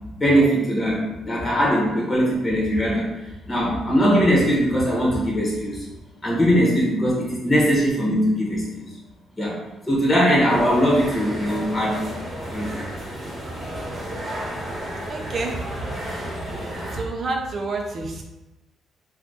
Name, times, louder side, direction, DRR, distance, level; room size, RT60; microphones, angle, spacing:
voice 1, 0.2-3.1 3.5-5.8 6.2-8.9 9.4-9.6 9.9-12.1 12.5-12.8 13.6-13.7, equal, 20° left, -6 dB, 1.1 m, -20 dB
sound 1, 10.5-17.0, right 1 dB, 20° right, 1.2 m, -32 dB
voice 2, 14.8-16.4 16.9-18.2, right 3 dB, 45° right, 1 dB, 0.6 m, -30 dB
2.6 x 2.4 x 3.6 m, 0.99 s
cardioid pair, 90°, 0 cm